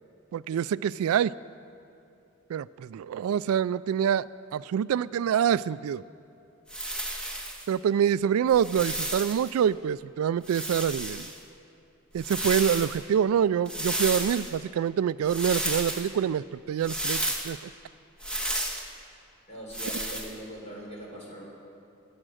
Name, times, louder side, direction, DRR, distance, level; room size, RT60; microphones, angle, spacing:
voice 1, 0.3-1.3 2.5-6.0 7.7-11.3 12.1-17.6, right 8 dB, 85° right, 17 dB, 0.3 m, -26 dB
sound 1, 6.7-7.7 8.5-9.5 10.4-11.4 12.2-13.0 13.7-14.5 15.3-16.1 16.8-17.5 18.2-18.9 19.7-20.3, right 1 dB, 5° left, 1.4 m, -32 dB
voice 2, 19.5-21.5, right 1 dB, 30° left, -3 dB, 3.9 m, -41 dB
22.0 x 8.8 x 6.3 m, 2.6 s
head